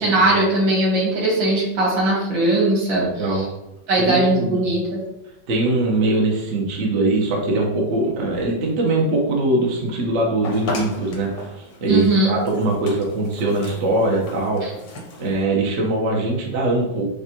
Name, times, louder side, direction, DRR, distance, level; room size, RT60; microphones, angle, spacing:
voice 1, 0.0-3.4 3.9-5.0 11.9-12.3 14.6-14.7, right 2 dB, 80° right, -4 dB, 2.1 m, -19 dB
voice 2, 3.0-3.4 4.0-4.6 5.5-14.6 15.2-17.1, right 2 dB, 50° right, -1 dB, 1.0 m, -22 dB
sound 1, 10.4-15.4, left 3 dB, 55° left, 0.9 m, -35 dB
6.7 x 2.4 x 2.9 m, 0.92 s
omnidirectional pair, 2.1 m